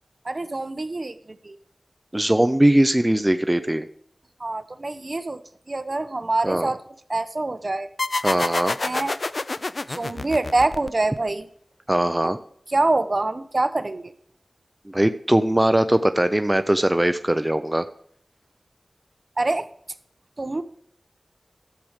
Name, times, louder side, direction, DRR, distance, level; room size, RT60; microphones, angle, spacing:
voice 1, 0.2-1.6 4.4-5.4 5.7-6.8 7.1-7.9 8.8-9.1 9.9-11.5 12.2-12.3 12.7-14.1 19.4-19.7 20.4-20.6, right 2 dB, 50° right, 11 dB, 0.8 m, -25 dB
voice 2, 2.1-3.9 6.4-6.7 8.2-8.8 11.9-12.4 14.9-17.8, right 1 dB, 20° right, 9 dB, 0.5 m, -20 dB
sound 1, 8.0-11.3, left 3 dB, 65° left, 0.4 m, -28 dB
12.0 x 7.8 x 5.0 m, 0.63 s
wide cardioid pair, 50°, 0 cm